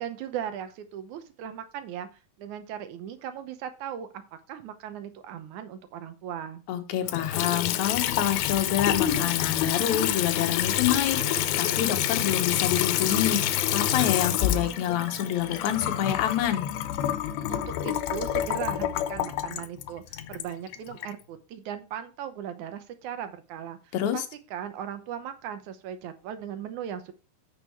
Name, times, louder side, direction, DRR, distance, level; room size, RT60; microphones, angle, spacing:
voice 1, 0.0-2.1 2.4-4.1 4.5-6.6 17.5-20.0 20.3-23.8 24.1-24.2 24.5-27.1, right 9 dB, 70° right, 9 dB, 2.1 m, -37 dB
voice 2, 6.7-16.7 23.9-24.3, left 11 dB, 65° left, 6 dB, 2.2 m, -27 dB
Water tap faucet / Sink (filling or washing) / Trickle dribble, 7.0-21.1, left 11 dB, 90° left, 2.6 m, -27 dB
sound 1, 8.7-16.3, right 3 dB, 40° right, 1.1 m, -49 dB
8.7 x 6.6 x 4.6 m, 0.32 s
omnidirectional pair, 4.1 m